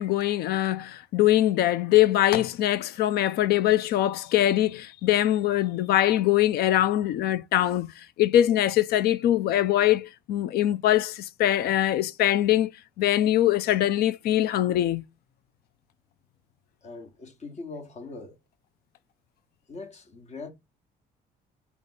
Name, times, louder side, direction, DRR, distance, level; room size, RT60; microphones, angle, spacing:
voice 1, 0.0-12.7 13.0-15.0, left 13 dB, 70° left, 0.5 m, -23 dB
voice 2, 16.8-18.4 19.7-20.5, left 3 dB, 40° left, 1.1 m, -41 dB
3.5 x 2.9 x 4.0 m
cardioid pair, 110°, 17 cm